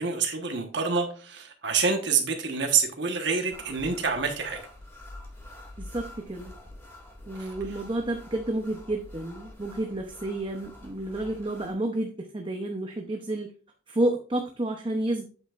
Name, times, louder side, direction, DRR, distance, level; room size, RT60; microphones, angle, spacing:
voice 1, 0.0-4.6 7.4-7.5, right 5 dB, 70° right, 1.3 m, -27 dB
sound 1, 3.5-11.7, left 1 dB, 15° left, 1.8 m, -46 dB
voice 2, 5.8-6.5 7.3-13.5 13.9-15.3, right 1 dB, 25° right, 0.7 m, -30 dB
8.5 x 7.7 x 2.5 m
head